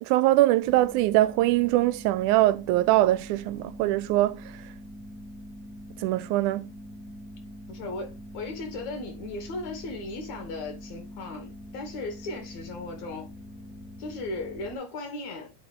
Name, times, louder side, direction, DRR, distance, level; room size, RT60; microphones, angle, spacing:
voice 1, 0.0-4.4 6.0-6.7, right 16 dB, 90° right, 2.0 m, -22 dB
sound 1, 0.6-14.8, equal, 5° right, 2.1 m, -44 dB
voice 2, 7.7-13.3 14.0-15.5, left 2 dB, 70° left, 3.5 m, -36 dB
8.8 x 4.7 x 3.5 m
omnidirectional pair, 3.4 m